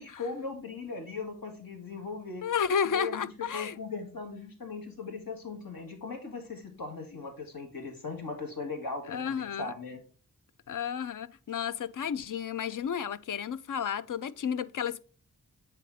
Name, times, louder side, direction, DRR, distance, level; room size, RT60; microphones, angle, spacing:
voice 1, 0.0-2.4 2.8-10.0 12.7-12.8, left 4 dB, 80° left, 1.8 m, -39 dB
voice 2, 2.4-3.8 9.1-9.7 10.7-15.0, left 7 dB, 65° left, 0.5 m, -32 dB
8.2 x 3.3 x 4.1 m
cardioid pair, 45°, 34 cm